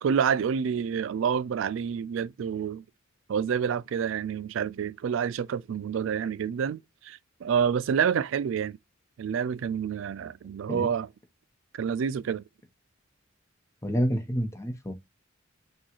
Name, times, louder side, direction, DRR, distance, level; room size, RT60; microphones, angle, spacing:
voice 1, 0.0-2.8 3.3-8.8 9.2-11.1 11.7-12.4, right 7 dB, 70° right, 0.3 m, -28 dB
voice 2, 13.8-14.9, equal, 15° left, 0.9 m, -28 dB
6.1 x 2.4 x 2.9 m
head